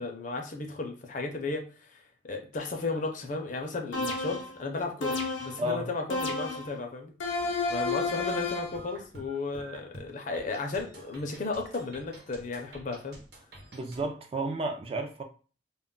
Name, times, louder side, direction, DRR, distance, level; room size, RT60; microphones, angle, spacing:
voice 1, 0.0-7.1 7.7-13.2, left 3 dB, 40° left, 3 dB, 0.5 m, -34 dB
sound 1, 3.9-4.6 5.0-5.6 6.1-6.7 7.2-8.8, left 3 dB, 85° left, 0.6 m, -31 dB
sound 2, 8.6-14.1, right 1 dB, 60° right, 0.9 m, -49 dB
voice 2, 13.7-15.2, right 1 dB, 30° right, 4 dB, 0.3 m, -32 dB
2.3 x 2.0 x 3.7 m, 0.37 s
head